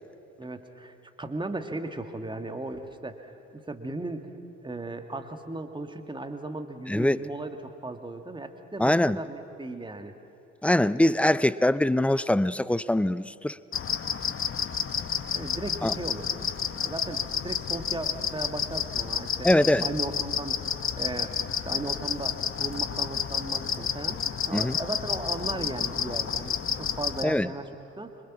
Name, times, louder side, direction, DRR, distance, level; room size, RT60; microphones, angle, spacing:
voice 1, 0.4-4.3 4.6-10.1 15.3-16.3 16.7-19.5 19.8-20.7 21.0-21.4 21.6-27.7 28.0-28.1, right 2 dB, 15° right, 6 dB, 2.1 m, -36 dB
voice 2, 6.9-7.2 8.8-9.2 10.6-13.6 15.8-15.9 19.4-19.8 24.5-24.8 27.2-27.5, left 1 dB, 5° left, 18 dB, 0.5 m, -23 dB
sound 1, 13.7-27.2, left 7 dB, 35° left, 1.3 m, -30 dB
26.0 x 25.0 x 6.2 m, 2.9 s
figure-of-eight pair, 45°, 36 cm